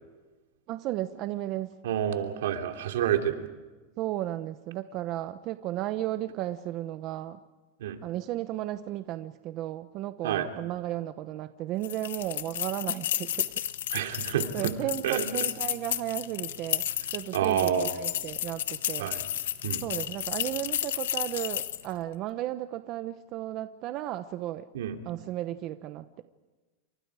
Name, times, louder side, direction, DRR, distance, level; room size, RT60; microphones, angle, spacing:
voice 1, 0.7-1.8 4.0-7.4 8.0-13.6 14.2-19.1 19.8-24.7 25.0-26.2, right 14 dB, 40° right, 10 dB, 0.9 m, -34 dB
voice 2, 1.8-3.5 7.8-8.0 10.2-10.5 13.9-14.7 15.0-15.3 17.3-17.9 19.0-19.2 19.6-19.8 24.7-25.0, right 10 dB, 80° right, 4 dB, 3.2 m, -28 dB
sound 1, 11.8-21.9, left 12 dB, 90° left, 1.5 m, -32 dB
29.5 x 26.5 x 5.0 m, 1.2 s
supercardioid pair, 155°, 0 cm